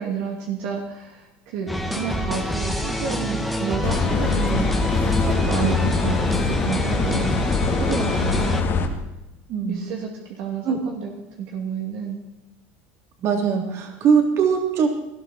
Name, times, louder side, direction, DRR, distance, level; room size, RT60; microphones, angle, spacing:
voice 1, 0.0-4.9 5.2-8.6 9.7-10.1 10.4-11.1 11.4-12.2, right 6 dB, 70° right, 0 dB, 2.8 m, -30 dB
sound 1, 1.7-8.6, equal, ahead, 1.6 m, -27 dB
sound 2, 3.8-8.9, left 4 dB, 35° left, 2.2 m, -23 dB
voice 2, 9.5-9.8 10.6-10.8 13.2-15.0, right 6 dB, 50° right, 3 dB, 3.4 m, -21 dB
18.5 x 13.0 x 4.5 m, 0.97 s
supercardioid pair, 115°, 6 cm